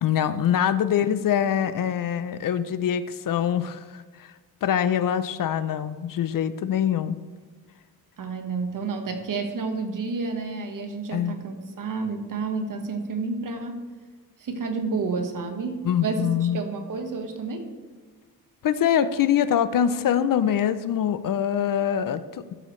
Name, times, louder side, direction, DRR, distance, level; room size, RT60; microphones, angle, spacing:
voice 1, 0.0-4.0 4.6-7.2 11.1-11.3 15.8-16.6 18.6-22.6, left 9 dB, 60° left, 13 dB, 0.5 m, -24 dB
voice 2, 8.2-13.8 14.4-17.7, right 4 dB, 55° right, 5 dB, 1.4 m, -30 dB
13.0 x 7.8 x 3.2 m, 1.5 s
wide cardioid pair, 140°, 37 cm